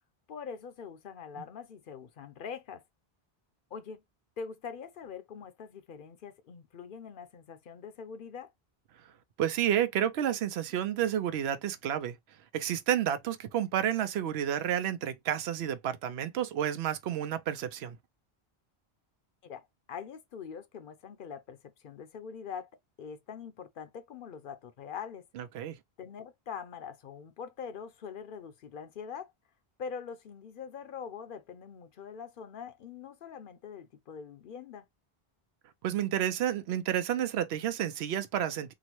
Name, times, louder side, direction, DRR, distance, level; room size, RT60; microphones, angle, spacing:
voice 1, 0.3-2.8 3.7-4.0 4.4-8.5 19.4-21.6 21.8-22.7 23.0-25.3 26.0-29.3 29.8-34.8, left 6 dB, 60° left, 0.7 m, -43 dB
voice 2, 9.4-12.2 12.5-18.0 25.4-25.8 35.8-38.7, right 10 dB, 85° right, 0.8 m, -30 dB
3.7 x 2.1 x 2.9 m
omnidirectional pair, 1.0 m